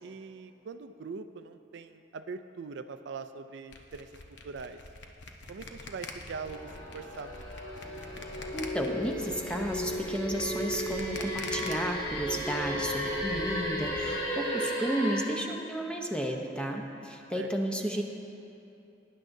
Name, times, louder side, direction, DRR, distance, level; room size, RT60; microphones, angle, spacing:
voice 1, 0.0-4.1 4.4-4.8 5.5-7.5 17.3-17.5, right 4 dB, 65° right, 10 dB, 0.4 m, -42 dB
sound 1, 3.7-11.7, left 3 dB, 65° left, 0.9 m, -44 dB
sound 2, 6.1-14.2, equal, 30° right, 1.3 m, -48 dB
sound 3, 6.3-15.2, equal, 25° left, 1.6 m, -35 dB
voice 2, 8.5-18.0, right 1 dB, 5° left, 1 dB, 0.8 m, -32 dB
18.5 x 10.0 x 2.7 m, 2.8 s
head